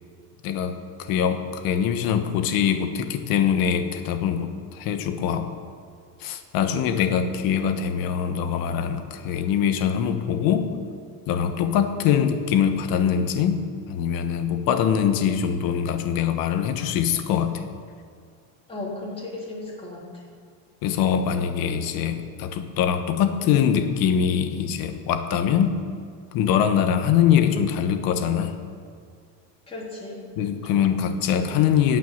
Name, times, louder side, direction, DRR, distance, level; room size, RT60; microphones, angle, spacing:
voice 1, 0.4-5.5 6.2-10.7 11.3-17.6 20.8-25.8 26.3-28.5 30.4-32.0, left 8 dB, 60° left, 8 dB, 1.2 m, -23 dB
voice 2, 18.7-20.2 29.7-30.2, left 2 dB, 15° left, -4 dB, 3.4 m, -35 dB
17.0 x 5.9 x 8.6 m, 2.2 s
cardioid pair, 150°, 40 cm